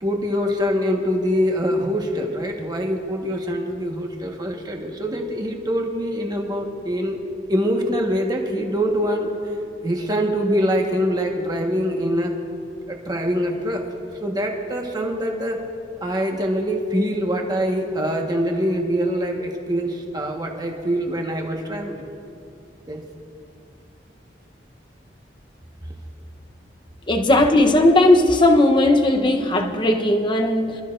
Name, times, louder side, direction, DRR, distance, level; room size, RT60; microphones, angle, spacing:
voice 1, 0.0-7.2 7.5-9.4 9.8-12.3 12.9-13.8 14.2-15.6 16.0-22.1 22.9-23.0, equal, 25° right, 1 dB, 1.3 m, -24 dB
voice 2, 27.1-30.8, left 1 dB, 30° left, 4 dB, 0.8 m, -17 dB
26.0 x 13.0 x 2.5 m, 2.6 s
head